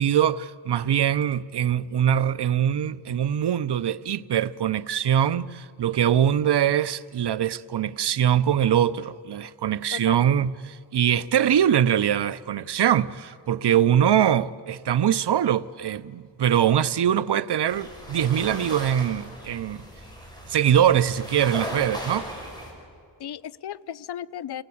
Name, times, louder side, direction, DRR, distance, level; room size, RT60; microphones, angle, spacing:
voice 1, 0.0-19.8 20.5-22.3, right 10 dB, 70° right, 0.7 m, -23 dB
voice 2, 9.9-10.4 23.2-24.6, left 10 dB, 65° left, 0.6 m, -35 dB
sound 1, 17.7-22.7, equal, 10° left, 6.2 m, -37 dB
29.0 x 18.0 x 8.5 m
wide cardioid pair, 95°, 42 cm